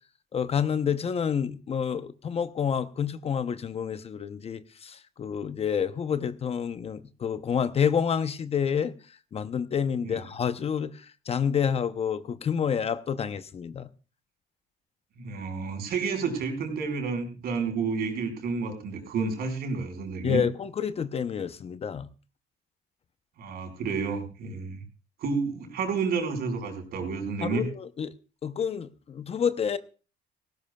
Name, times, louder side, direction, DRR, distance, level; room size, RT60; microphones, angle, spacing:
voice 1, 0.3-8.9 9.3-13.9 20.2-22.1 27.4-28.1 28.4-29.8, left 7 dB, 35° left, 0.8 m, -28 dB
voice 2, 15.2-20.4 23.4-24.8 25.2-27.6, right 5 dB, 65° right, 4.8 m, -30 dB
18.0 x 16.0 x 2.3 m
cardioid pair, 110°, 17 cm